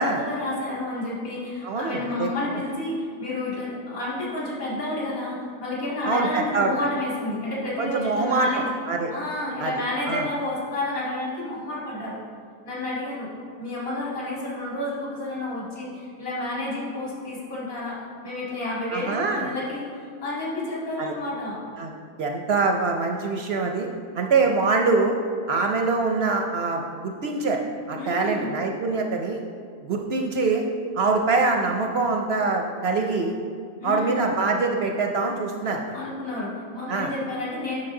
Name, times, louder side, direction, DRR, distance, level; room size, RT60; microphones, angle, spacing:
voice 1, 0.0-8.7 9.1-12.2 12.6-13.3 13.6-21.6 28.0-28.5 33.8-34.3 35.9-37.9, left 2 dB, 60° left, -6 dB, 2.5 m, -30 dB
voice 2, 1.6-2.3 6.0-6.7 7.8-9.1 9.6-9.7 10.1-10.2 18.9-19.5 21.0-21.1 21.8-21.9 22.2-23.9 24.1-25.1 25.5-27.6 27.9-29.4 29.8-30.6 30.9-33.3 33.8-36.0 36.9-37.1, right 3 dB, 65° right, 2 dB, 0.6 m, -24 dB
9.6 x 6.0 x 3.7 m, 2.1 s
omnidirectional pair, 1.6 m